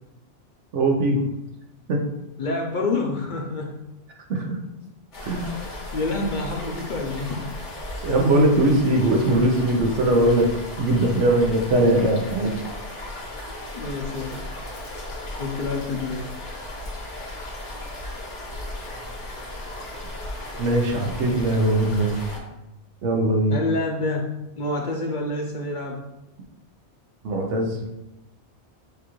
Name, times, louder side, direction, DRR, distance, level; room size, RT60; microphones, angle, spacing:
voice 1, 0.7-1.2 1.9-2.0 4.3-4.6 5.2-5.6 8.0-12.5 20.6-22.2 23.0-23.6 27.2-27.8, right 1 dB, 85° right, 2 dB, 1.1 m, -20 dB
voice 2, 2.4-3.8 5.4-7.6 13.7-14.4 15.4-16.3 23.5-26.0, left 2 dB, 55° left, 1 dB, 0.6 m, -28 dB
sound 1, 5.1-22.4, left 1 dB, 85° left, 1.4 m, -36 dB
6.4 x 2.4 x 3.0 m, 0.92 s
omnidirectional pair, 1.2 m